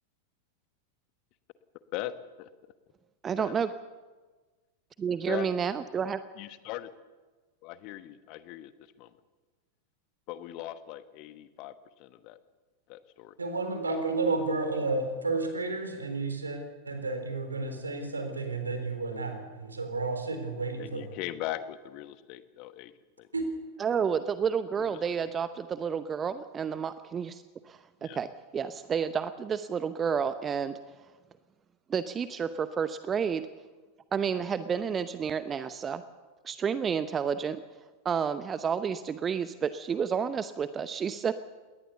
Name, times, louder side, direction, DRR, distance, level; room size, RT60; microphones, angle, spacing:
voice 1, 1.9-2.5 3.4-3.5 5.3-5.5 6.4-6.9 7.6-8.7 9.0-9.1 10.3-11.7 12.0-12.4 12.9-13.3 20.8-22.9 23.2-23.3 24.8-24.9 28.0-28.2, left 14 dB, 40° left, 12 dB, 1.2 m, -39 dB
voice 2, 3.2-3.7 5.0-6.2 23.8-28.3 28.5-30.8 31.9-33.4 34.1-36.0 36.4-37.6 38.0-41.3, right 7 dB, 20° right, 13 dB, 0.7 m, -30 dB
voice 3, 13.4-16.6 16.9-21.1 23.3-23.4, right 3 dB, 75° right, 7 dB, 3.7 m, -31 dB
21.0 x 18.5 x 7.1 m, 1.3 s
figure-of-eight pair, 90°, 0 cm